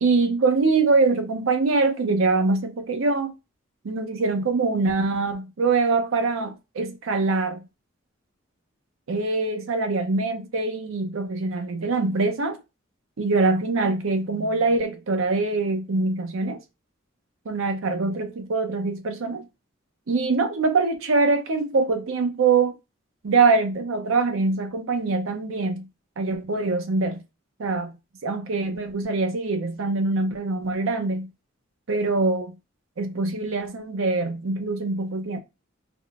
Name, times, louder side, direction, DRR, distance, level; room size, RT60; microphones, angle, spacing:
voice 1, 0.0-3.3 3.8-7.6 9.1-12.6 13.2-16.6 17.5-19.5 20.1-22.7 23.2-25.9 26.2-27.2 27.6-27.9 28.2-31.3 31.9-32.5 33.0-35.4, right 3 dB, 80° right, 0.6 m, -23 dB
3.4 x 2.1 x 2.3 m
head